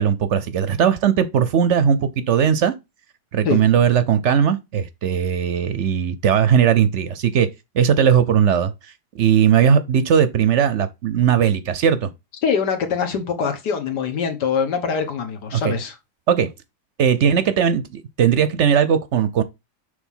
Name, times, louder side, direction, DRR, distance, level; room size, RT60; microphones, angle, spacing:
voice 1, 0.0-2.7 3.3-7.5 7.7-8.7 9.1-12.1 15.5-15.7 16.3-16.5 17.0-19.4, right 8 dB, 65° right, 0.7 m, -18 dB
voice 2, 12.4-16.0, left 6 dB, 85° left, 1.8 m, -23 dB
6.3 x 3.3 x 5.4 m
omnidirectional pair, 1.7 m